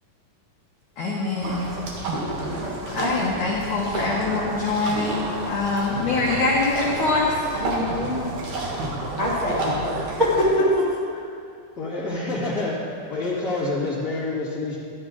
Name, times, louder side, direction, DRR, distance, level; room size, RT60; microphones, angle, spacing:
voice 1, 1.0-1.7 2.9-5.2 5.5-7.4, left 3 dB, 75° left, -4 dB, 1.8 m, -24 dB
sound 1, 1.4-10.5, right 2 dB, 55° right, 2.4 m, -30 dB
voice 2, 7.5-8.3 9.2-9.8 10.2-10.9, equal, 30° right, -9 dB, 0.7 m, -23 dB
voice 3, 11.8-12.8 13.1-14.8, left 2 dB, 45° left, -8 dB, 1.1 m, -27 dB
12.0 x 12.0 x 3.9 m, 2.3 s
omnidirectional pair, 5.2 m